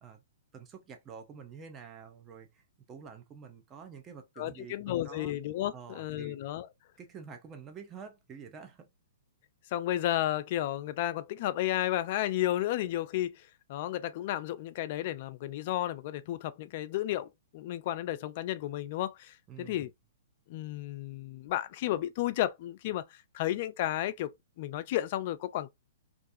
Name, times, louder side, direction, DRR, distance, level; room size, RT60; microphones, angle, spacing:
voice 1, 0.5-5.3 5.7-6.4 7.0-8.9 19.5-19.9, right 6 dB, 25° right, 0.6 m, -48 dB
voice 2, 4.4-6.7 9.7-19.9 20.5-25.7, left 13 dB, 50° left, 0.3 m, -33 dB
2.4 x 2.3 x 2.6 m
hypercardioid pair, 120°, 0 cm